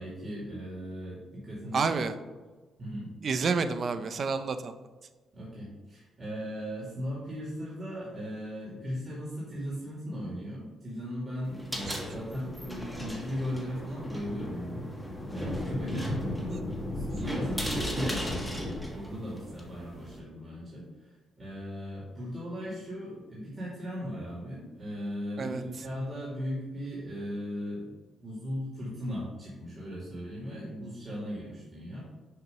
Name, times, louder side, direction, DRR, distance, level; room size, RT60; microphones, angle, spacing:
voice 1, 0.0-2.0 2.8-3.1 5.3-14.9 15.3-16.6 16.9-20.8 21.4-27.9 28.2-32.0, equal, 25° right, -6 dB, 1.9 m, -37 dB
voice 2, 1.7-2.1 3.2-4.7 11.8-12.0 16.5-16.6 25.4-25.6, right 4 dB, 45° right, 9 dB, 0.5 m, -29 dB
sound 1, 11.4-20.2, equal, ahead, 1.2 m, -39 dB
Thunder, 12.2-18.9, left 1 dB, 25° left, 1.6 m, -36 dB
6.7 x 3.0 x 5.5 m, 1.2 s
cardioid pair, 110°, 0 cm